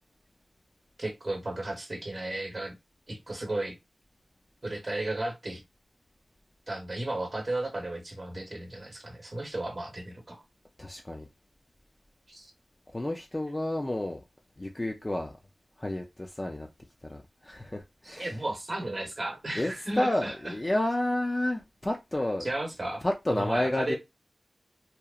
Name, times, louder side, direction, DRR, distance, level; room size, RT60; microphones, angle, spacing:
voice 1, 1.0-2.7 3.1-3.8 4.6-5.6 6.7-10.4 12.3-12.5 18.0-20.5 22.4-24.0, right 1 dB, 40° right, 0.8 m, -34 dB
voice 2, 10.8-11.3 12.9-14.2 14.6-15.3 15.8-16.7 17.1-18.4 19.6-22.5 23.0-24.0, left 1 dB, 25° left, 0.3 m, -30 dB
2.8 x 2.0 x 2.3 m
wide cardioid pair, 75°, 0 cm